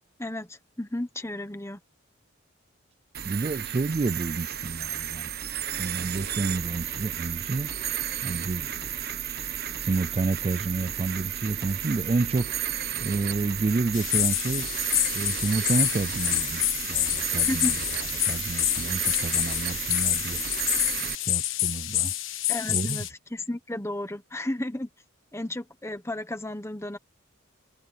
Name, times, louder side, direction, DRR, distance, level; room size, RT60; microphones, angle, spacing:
voice 1, 0.2-1.8 17.5-17.7 22.5-24.9 25.3-27.0, left 1 dB, 15° left, 1.2 m, -33 dB
sound 1, 3.1-21.1, right 10 dB, 50° right, 1.3 m, -33 dB
voice 2, 3.2-5.3 5.8-7.7 8.2-8.7 9.8-12.5 13.0-14.7 15.1-17.7 18.2-20.4 21.2-22.1 22.7-23.0, right 3 dB, 30° right, 0.3 m, -29 dB
sound 2, 13.9-23.1, left 15 dB, 65° left, 1.3 m, -27 dB
head